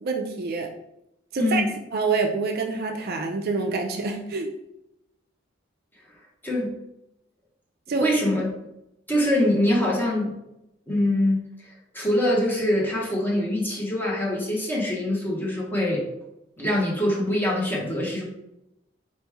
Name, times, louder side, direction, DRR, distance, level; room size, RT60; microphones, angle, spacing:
voice 1, 0.0-0.7 1.3-4.5 7.9-8.1, right 4 dB, 50° right, 3 dB, 0.5 m, -26 dB
voice 2, 1.4-1.7 6.4-6.7 7.9-8.5 9.1-10.4 10.9-11.4 11.9-16.0 16.6-18.2, left 1 dB, 10° left, -4 dB, 1.1 m, -24 dB
4.5 x 3.1 x 3.4 m, 0.85 s
head